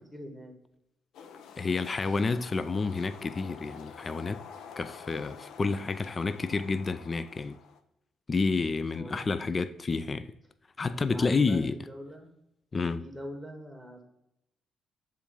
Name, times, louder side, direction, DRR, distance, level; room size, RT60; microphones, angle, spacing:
voice 1, 0.1-0.5 8.9-9.4 11.0-12.3 13.0-14.0, equal, ahead, 2.0 m, -43 dB
sound 1, 1.1-7.8, left 7 dB, 80° left, 0.7 m, -48 dB
voice 2, 1.6-4.4 4.8-7.6 8.3-10.3 10.8-11.8 12.7-13.0, left 4 dB, 35° left, 0.4 m, -29 dB
7.3 x 3.8 x 5.4 m
cardioid pair, 90°, 0 cm